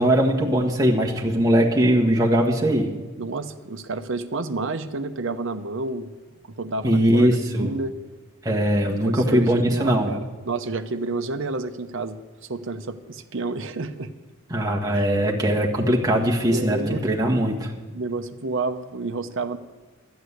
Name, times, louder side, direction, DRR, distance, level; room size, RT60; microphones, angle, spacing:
voice 1, 0.0-2.9 6.8-7.7 8.4-10.1 14.5-17.7, equal, 15° right, -1 dB, 1.6 m, -20 dB
voice 2, 3.2-6.1 6.6-8.0 9.0-12.2 12.5-14.1 14.9-15.1 16.5-17.1 17.9-19.6, right 3 dB, 60° right, 9 dB, 0.8 m, -30 dB
12.5 x 8.2 x 8.2 m, 1.3 s
head